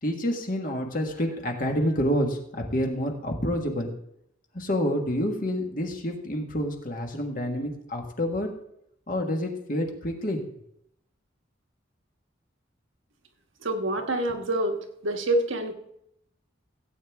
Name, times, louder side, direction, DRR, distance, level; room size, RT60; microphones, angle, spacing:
voice 1, 0.0-3.9 4.5-8.5 9.1-10.4, equal, 45° left, 2 dB, 1.6 m, -28 dB
voice 2, 13.6-15.7, right 1 dB, 90° right, 4 dB, 1.5 m, -27 dB
16.5 x 8.7 x 3.6 m, 0.76 s
head